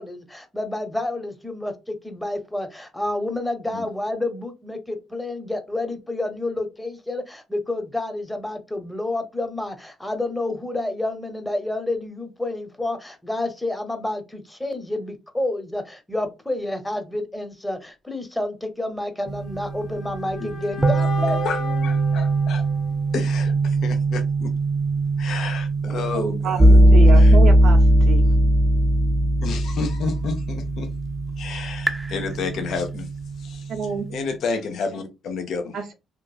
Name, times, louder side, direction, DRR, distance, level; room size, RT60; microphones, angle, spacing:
voice 1, 0.0-21.8, left 2 dB, 10° left, 0.8 m, -29 dB
sound 1, 19.2-23.3, left 4 dB, 45° left, 1.7 m, -39 dB
sound 2, 19.3-34.4, right 1 dB, 15° right, 0.5 m, -20 dB
voice 2, 21.4-22.6 23.1-24.5 25.2-26.8 27.1-27.4 29.4-30.9 31.4-33.1 33.4-33.8 34.1-35.8, left 4 dB, 70° left, 0.6 m, -30 dB
voice 3, 25.9-27.8 28.1-28.2 33.7-34.1 35.7-35.9, right 6 dB, 75° right, 0.6 m, -28 dB
3.0 x 2.3 x 2.3 m
supercardioid pair, 60°, 0 cm